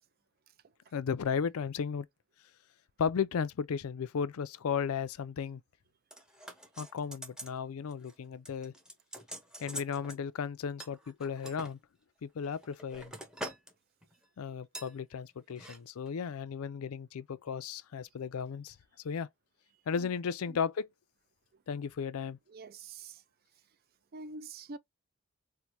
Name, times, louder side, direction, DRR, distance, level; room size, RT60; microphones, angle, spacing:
voice 1, 0.9-2.1 3.0-5.6 6.8-8.7 9.6-11.8 12.2-13.1 14.4-18.8 19.0-19.3 19.9-20.9 21.7-22.4, left 6 dB, 80° left, 0.4 m, -35 dB
sound 1, 6.1-7.6 7.9-8.2 8.4-10.2 10.8-11.7 12.4-13.7 14.0-14.2 14.7-14.9 15.5-15.8 16.1-16.2, equal, 5° right, 0.7 m, -45 dB
voice 2, 22.5-23.2 24.1-24.8, right 3 dB, 45° right, 0.4 m, -45 dB
4.5 x 2.1 x 2.6 m
head